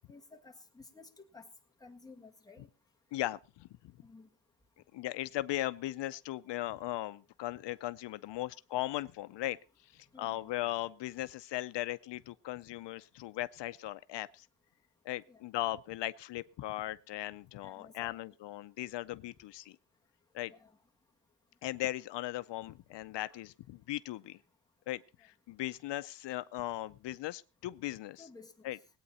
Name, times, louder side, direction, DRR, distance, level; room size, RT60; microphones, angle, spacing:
voice 1, 0.1-1.5 1.8-2.7 4.0-4.3 10.1-10.5 15.3-15.4 17.6-18.2 20.5-20.7 23.3-23.4 28.2-28.7, left 4 dB, 10° left, 1.7 m, -54 dB
voice 2, 3.1-3.7 4.9-14.5 15.0-19.8 20.3-20.5 21.6-24.4 24.9-28.2 28.6-28.8, left 15 dB, 75° left, 0.5 m, -38 dB
20.0 x 8.8 x 4.2 m
cardioid pair, 145°, 43 cm